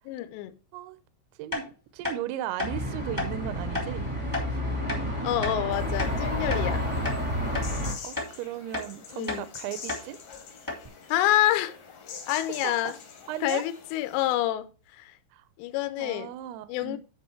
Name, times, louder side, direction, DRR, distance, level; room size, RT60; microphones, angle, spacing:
voice 1, 0.1-0.5 5.2-6.9 9.1-9.5 11.1-11.8 12.3-13.0 13.4-14.7 15.0-15.1 15.6-16.3 16.7-17.0, left 14 dB, 80° left, 2.8 m, -27 dB
voice 2, 1.4-4.1 8.0-10.2 12.5-12.9 13.3-13.6 15.3-15.4 16.0-17.0, right 12 dB, 80° right, 2.3 m, -36 dB
sound 1, 1.5-1.6 2.0-2.2 2.6-2.7 3.2-3.3 3.7-3.9 4.3-4.5 4.9-5.0 5.4-5.6 6.0-6.7 7.0-7.2 7.5-7.7 8.2-8.3 8.7-8.9 9.3-9.4 9.9-10.0 10.3-10.4 10.7-10.9, left 2 dB, 15° left, 0.7 m, -32 dB
sound 2, 2.6-7.9, equal, 15° right, 1.0 m, -30 dB
sound 3, 5.7-14.3, left 6 dB, 60° left, 2.7 m, -44 dB
10.0 x 4.9 x 4.4 m
omnidirectional pair, 5.5 m